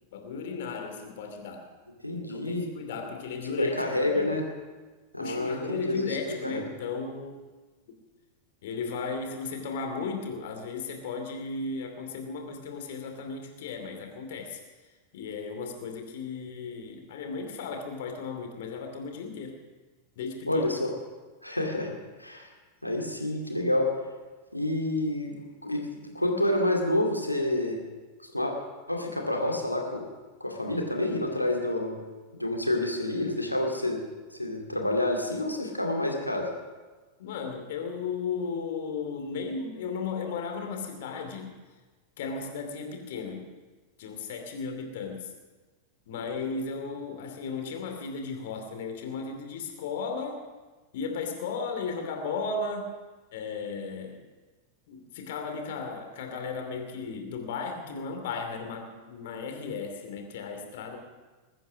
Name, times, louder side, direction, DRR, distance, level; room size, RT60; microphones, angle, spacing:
voice 1, 0.1-1.7 2.1-4.3 5.2-7.4 8.6-14.6 15.1-19.6 20.2-20.6 37.2-41.6 42.2-43.5 44.0-45.3 46.1-50.4 50.9-52.9 53.3-54.2 54.9-61.0, left 4 dB, 55° left, 4 dB, 2.6 m, -35 dB
voice 2, 2.0-2.7 3.5-4.4 5.1-6.6 20.5-20.9 21.4-21.9 22.2-22.5 22.8-23.9 24.5-25.4 25.6-25.8 26.1-27.8 28.2-28.5 28.9-30.1 30.4-32.0 32.3-34.0 34.3-36.5, left 1 dB, 90° left, 1 dB, 2.3 m, -28 dB
21.0 x 9.3 x 6.2 m, 1.3 s
figure-of-eight pair, 90°, 0 cm